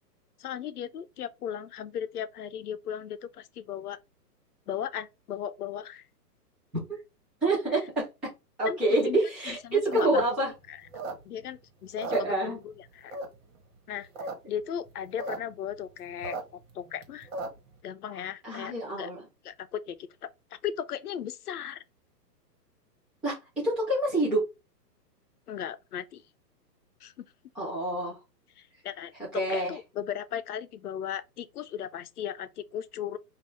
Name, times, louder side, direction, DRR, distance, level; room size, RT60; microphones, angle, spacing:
voice 1, 0.4-4.0 4.7-6.1 7.7-7.8 8.6-8.8 9.1-9.2 9.5-10.4 10.7-10.8 11.2-13.2 13.9-17.3 17.8-19.1 19.4-21.8 25.5-26.2 27.0-27.2 28.6-33.2, left 9 dB, 65° left, 0.7 m, -37 dB
voice 2, 7.4-8.0 8.6-10.5 12.1-12.6 18.4-19.2 23.2-23.4 23.6-24.4 27.5-28.2 29.3-29.7, right 2 dB, ahead, 0.5 m, -27 dB
sound 1, 9.7-11.5 11.9-12.8 13.1-13.6 14.0-14.3 14.6-14.7 14.9-15.4 15.7-17.7, right 2 dB, 50° right, 1.6 m, -37 dB
5.2 x 2.7 x 3.1 m
hypercardioid pair, 155°, 49 cm